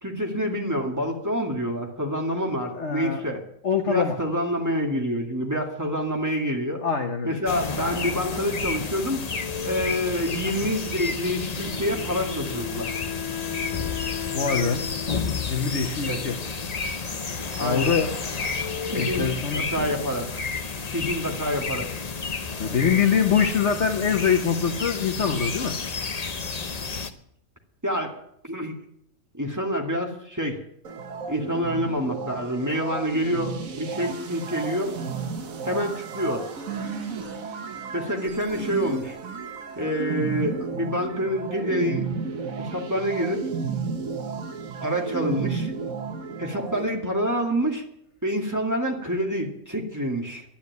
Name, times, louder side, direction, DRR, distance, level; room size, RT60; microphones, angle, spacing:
voice 1, 0.0-3.4 3.9-6.8 7.2-9.2 9.6-12.9 16.0-16.2 17.6-17.9 18.9-20.3 20.9-21.9 27.8-28.1 28.4-28.7 29.3-30.6 31.3-35.0 35.6-36.5 37.9-39.2 39.8-42.1 42.6-43.5 44.8-45.7 46.4-47.8 48.2-50.4, equal, 10° right, 1 dB, 2.2 m, -27 dB
voice 2, 2.7-3.2 3.6-4.2 6.8-7.4 14.3-14.8 15.5-16.4 17.6-18.1 18.9-19.6 22.6-25.7, left 6 dB, 55° left, 5 dB, 1.3 m, -24 dB
sound 1, 7.5-27.1, left 5 dB, 35° left, 0.8 m, -31 dB
Wind instrument woodwind instrument, 11.6-16.7, left 13 dB, 80° left, 1.2 m, -37 dB
sound 2, 30.8-46.8, right 5 dB, 70° right, 1.7 m, -33 dB
11.5 x 10.0 x 9.4 m, 0.72 s
omnidirectional pair, 1.5 m